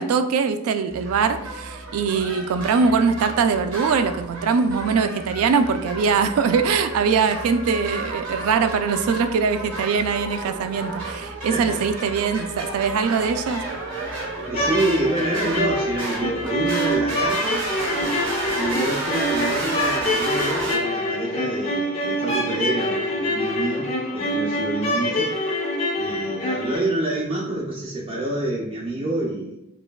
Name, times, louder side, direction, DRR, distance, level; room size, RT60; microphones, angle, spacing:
voice 1, 0.0-13.6, right 5 dB, 85° right, 12 dB, 0.3 m, -22 dB
sound 1, 0.9-20.8, right 2 dB, 70° right, 1.4 m, -32 dB
sound 2, 14.4-26.8, left 1 dB, 30° left, 0.7 m, -25 dB
voice 2, 14.4-17.7 18.5-25.4 26.0-29.6, right 1 dB, 25° right, -5 dB, 0.5 m, -27 dB
5.2 x 2.2 x 2.3 m, 0.81 s
head